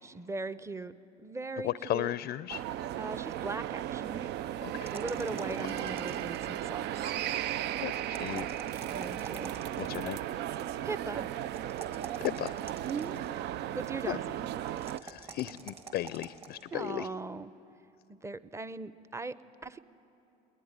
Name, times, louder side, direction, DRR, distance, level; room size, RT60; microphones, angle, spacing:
voice 1, 0.0-0.9 1.2-2.1 3.0-4.3 4.7-7.1 8.7-9.5 10.0-10.2 10.8-11.3 12.8-13.2 13.7-14.5 16.7-17.5 18.1-19.4 19.6-19.8, right 3 dB, 15° right, 15 dB, 0.8 m, -39 dB
voice 2, 1.6-2.6 4.6-4.9 5.6-5.7 7.8-8.5 9.8-10.2 12.2-12.6 14.1-14.2 15.0-17.1, left 14 dB, 55° left, 17 dB, 0.5 m, -35 dB
sound 1, 2.5-15.0, right 11 dB, 60° right, 0.5 m, -36 dB
sound 2, 4.8-6.6 8.0-10.0 11.5-13.4 14.7-16.6, right 5 dB, 30° right, 2.2 m, -47 dB
22.0 x 19.0 x 9.9 m, 2.8 s
supercardioid pair, 85°, 20 cm